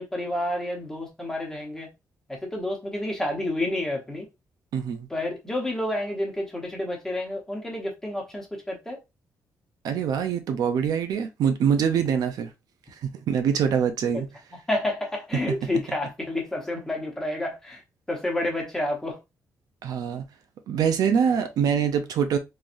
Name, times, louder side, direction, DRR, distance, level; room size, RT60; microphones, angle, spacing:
voice 1, 0.0-1.9 2.3-4.3 5.1-9.0 14.1-14.2 14.5-17.8 18.1-19.2, left 1 dB, 5° left, 1.0 m, -29 dB
voice 2, 4.7-5.1 9.8-12.5 12.9-14.3 19.8-20.2 20.7-22.4, right 7 dB, 70° right, 0.6 m, -24 dB
3.8 x 3.2 x 2.5 m
wide cardioid pair, 175°, 7 cm